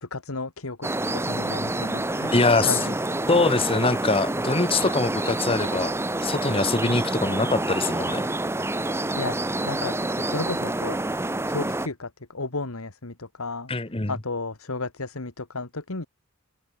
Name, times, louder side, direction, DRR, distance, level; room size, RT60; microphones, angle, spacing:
voice 1, 0.0-2.4 2.6-3.2 9.2-9.4 9.7-11.0 11.5-13.7 14.1-16.1, left 3 dB, 85° left, 2.2 m, -33 dB
sound 1, 0.8-11.9, right 2 dB, 10° right, 1.1 m, -28 dB
voice 2, 2.3-2.8 3.3-5.9 6.2-8.2 13.7-14.1, left 3 dB, 25° left, 1.5 m, -23 dB
open air
head